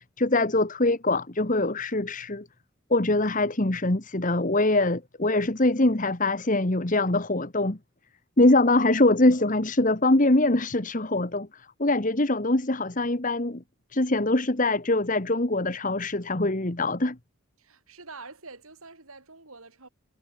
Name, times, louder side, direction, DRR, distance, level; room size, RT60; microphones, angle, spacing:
voice 1, 0.0-2.5 2.9-7.8 8.4-13.6 13.9-17.2, left 2 dB, 35° left, 1.5 m, -23 dB
voice 2, 17.6-19.9, right 3 dB, 75° right, 6.3 m, -46 dB
head